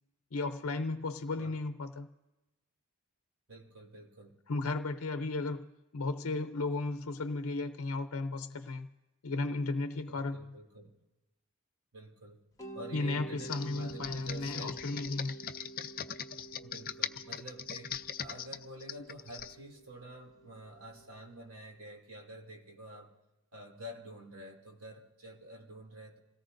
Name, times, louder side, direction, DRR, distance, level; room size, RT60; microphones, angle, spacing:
voice 1, 0.3-2.1 4.5-8.9 9.2-10.5 12.9-15.3, left 3 dB, 85° left, 0.7 m, -35 dB
voice 2, 3.5-4.4 10.1-10.9 11.9-12.4 12.7-14.8 16.6-23.1 23.5-26.2, right 1 dB, 75° right, 2.9 m, -49 dB
Mallet percussion, 12.6-21.3, right 3 dB, 15° left, 1.2 m, -49 dB
Computer keyboard, 13.4-19.5, left 9 dB, 45° left, 0.5 m, -40 dB
28.0 x 17.5 x 2.6 m
head